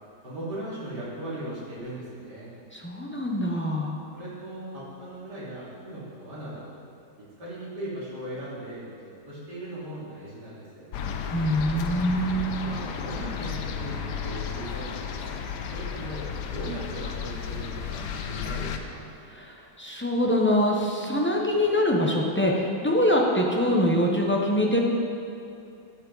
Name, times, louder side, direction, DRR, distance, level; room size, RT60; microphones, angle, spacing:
voice 1, 0.2-2.5 4.1-6.6 7.2-10.9 12.6-15.4 15.7-19.0, right 1 dB, 75° right, -8 dB, 3.3 m, -38 dB
voice 2, 2.7-3.9 11.3-12.6 19.3-24.8, equal, 10° left, -2 dB, 0.6 m, -24 dB
sound 1, 10.9-18.8, left 7 dB, 75° left, 1.3 m, -33 dB
12.0 x 7.5 x 4.0 m, 2.7 s
omnidirectional pair, 1.8 m